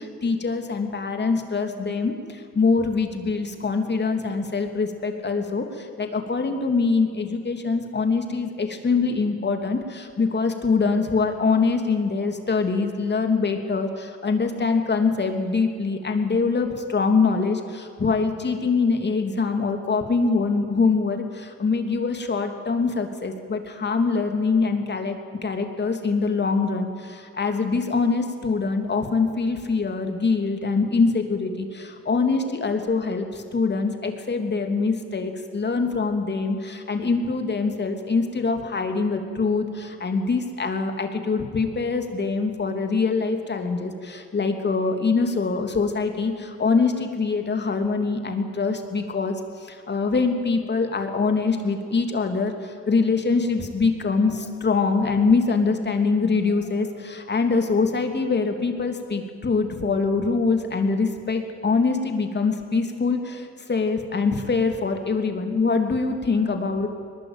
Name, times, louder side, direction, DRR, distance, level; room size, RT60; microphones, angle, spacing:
voice 1, 0.0-66.9, left 4 dB, 35° left, 5 dB, 3.1 m, -24 dB
22.0 x 20.5 x 9.2 m, 2.4 s
cardioid pair, 90°, 30 cm